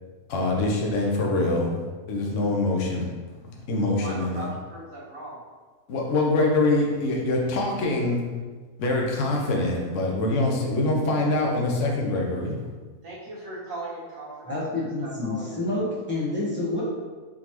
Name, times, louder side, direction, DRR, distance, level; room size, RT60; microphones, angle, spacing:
voice 1, 0.3-1.7 2.1-3.1 3.4-4.4 5.9-8.3 8.8-12.6, left 2 dB, 60° left, -1 dB, 1.0 m, -24 dB
voice 2, 3.9-5.4 13.0-15.6, right 2 dB, 60° right, -6 dB, 1.2 m, -38 dB
voice 3, 14.5-16.8, left 2 dB, 10° left, -8 dB, 0.9 m, -28 dB
4.2 x 3.4 x 3.0 m, 1.4 s
omnidirectional pair, 1.7 m